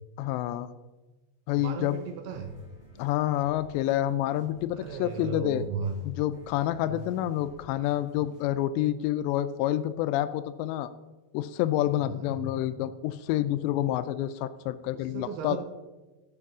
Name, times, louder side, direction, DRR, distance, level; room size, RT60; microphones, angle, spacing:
voice 1, 0.2-0.7 1.5-2.0 3.0-5.6 6.0-10.9 11.3-15.6, left 13 dB, 90° left, 12 dB, 2.8 m, -28 dB
sound 1, 1.6-8.4, right 2 dB, 35° right, 4.3 m, -55 dB
voice 2, 1.6-2.5 4.7-6.0 6.8-7.1 12.0-12.4 14.9-15.6, right 6 dB, 75° right, 6 dB, 2.7 m, -36 dB
12.5 x 7.8 x 6.0 m, 1.1 s
omnidirectional pair, 4.9 m